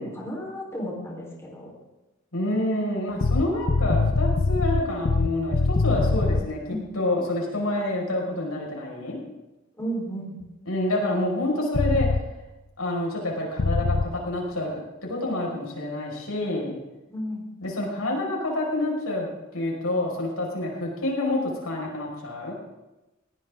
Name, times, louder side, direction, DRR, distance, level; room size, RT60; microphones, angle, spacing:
voice 1, 0.0-1.7 6.7-6.9 9.8-10.4 17.1-17.5, equal, 15° left, -3 dB, 4.1 m, -33 dB
voice 2, 2.3-9.2 10.7-12.1 12.8-16.8 17.6-19.3 19.5-22.5, left 1 dB, 90° left, -1 dB, 5.4 m, -28 dB
Spy Action Scene, 3.2-6.5 11.7-12.2 13.6-14.0, left 3 dB, 50° left, 0.6 m, -22 dB
20.0 x 17.5 x 3.7 m, 1.0 s
head